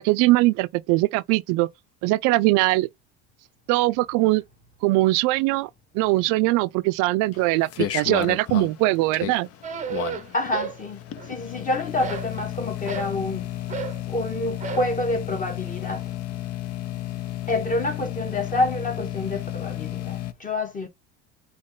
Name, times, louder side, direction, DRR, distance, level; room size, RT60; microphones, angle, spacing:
voice 1, 0.0-1.7 2.0-2.9 3.7-4.4 4.8-5.7 5.9-9.5, right 19 dB, 75° right, 0.5 m, -21 dB
sound 1, 7.3-20.3, left 12 dB, 50° left, 0.6 m, -33 dB
sound 2, 9.6-10.8 11.1-11.6 12.0-13.2 13.7-14.0 14.6-14.9, right 6 dB, 25° right, 0.7 m, -33 dB
voice 2, 10.3-13.5 14.1-16.1 17.5-20.9, left 2 dB, 25° left, 1.5 m, -28 dB
4.1 x 2.9 x 3.7 m
cardioid pair, 115°, 31 cm